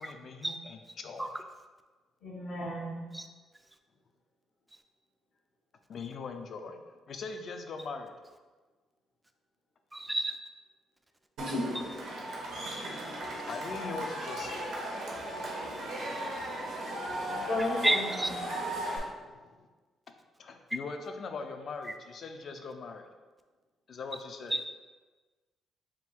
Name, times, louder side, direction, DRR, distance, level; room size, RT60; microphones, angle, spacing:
voice 1, 0.0-1.4 5.9-6.8 7.1-8.1 13.5-14.7 19.1-19.7 20.4-23.1 23.9-24.6, left 4 dB, 55° left, 5 dB, 0.4 m, -41 dB
voice 2, 2.2-3.1 16.9-18.5, left 1 dB, 80° left, -8 dB, 1.0 m, -35 dB
voice 3, 9.9-10.3 11.7-11.8 16.8-16.9 17.8-18.3 24.5-24.6, right 1 dB, 10° right, 6 dB, 0.3 m, -29 dB
Cheering / Crowd, 11.4-19.0, right 1 dB, 80° right, 0.9 m, -36 dB
3.7 x 2.4 x 4.4 m, 1.3 s
cardioid pair, 90°, 0 cm